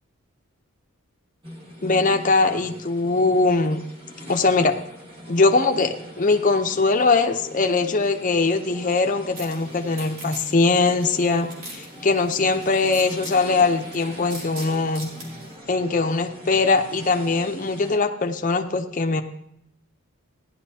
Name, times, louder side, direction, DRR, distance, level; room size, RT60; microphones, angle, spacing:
sound 1, 1.4-18.0, equal, 25° right, 1.5 m, -41 dB
voice 1, 1.8-3.8 4.3-4.8 5.3-15.1 15.7-19.2, left 3 dB, 35° left, 4 dB, 0.6 m, -21 dB
sound 2, 9.3-15.5, right 1 dB, 70° right, 3.2 m, -43 dB
15.5 x 11.0 x 2.8 m, 0.74 s
head